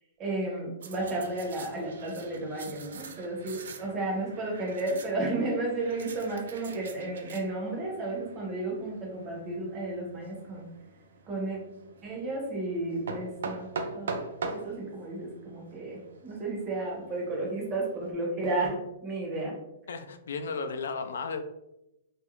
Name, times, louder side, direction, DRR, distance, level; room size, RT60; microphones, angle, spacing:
voice 1, 0.2-10.7 11.3-11.6 12.0-13.7 13.9-19.6, right 2 dB, 20° right, -2 dB, 0.6 m, -33 dB
sound 1, 0.8-18.1, right 4 dB, 70° right, 0.3 m, -43 dB
voice 2, 19.9-21.4, left 4 dB, 85° left, 7 dB, 0.3 m, -34 dB
2.4 x 2.0 x 3.0 m, 0.90 s
hypercardioid pair, 170°, 0 cm